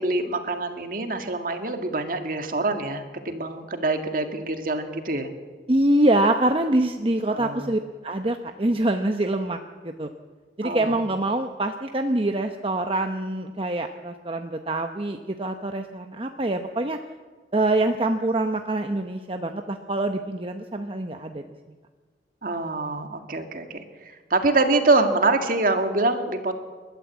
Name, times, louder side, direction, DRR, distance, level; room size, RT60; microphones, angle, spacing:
voice 1, 0.0-5.3 7.3-7.7 10.6-11.0 22.4-26.5, right 2 dB, 50° right, 6 dB, 2.0 m, -25 dB
voice 2, 5.7-10.1 10.6-17.0 17.5-21.4, right 1 dB, 30° right, 5 dB, 0.9 m, -25 dB
29.5 x 13.0 x 8.4 m, 1.5 s
head